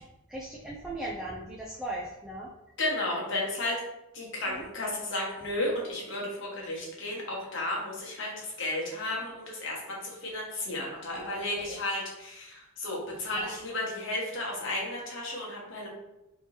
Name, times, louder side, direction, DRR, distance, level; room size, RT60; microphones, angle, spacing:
voice 1, 0.3-2.5 4.5-4.7 11.1-11.8 13.3-13.5, right 1 dB, 5° right, -5 dB, 0.3 m, -38 dB
voice 2, 2.8-3.8 4.1-15.9, left 1 dB, 60° left, -3 dB, 1.1 m, -33 dB
3.4 x 2.8 x 3.0 m, 0.92 s
head